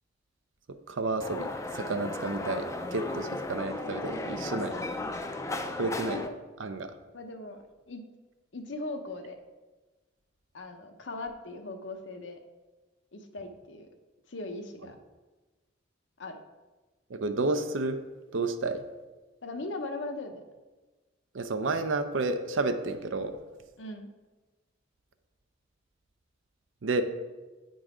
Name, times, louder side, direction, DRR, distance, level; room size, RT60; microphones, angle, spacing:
voice 1, 0.9-1.5 1.7-4.7 5.8-6.2 6.6-6.9 17.1-18.0 18.3-18.8 21.3-23.3 26.8-27.0, right 3 dB, 80° right, 8 dB, 0.6 m, -30 dB
sound 1, 1.2-6.3, left 2 dB, 15° left, 0.4 m, -35 dB
voice 2, 7.1-8.0 8.5-9.4 10.5-12.4 13.1-13.9 14.3-15.0 16.2-16.4 19.4-20.4 23.8-24.1, left 2 dB, 70° left, 5 dB, 0.8 m, -39 dB
8.9 x 3.9 x 4.8 m, 1.2 s
head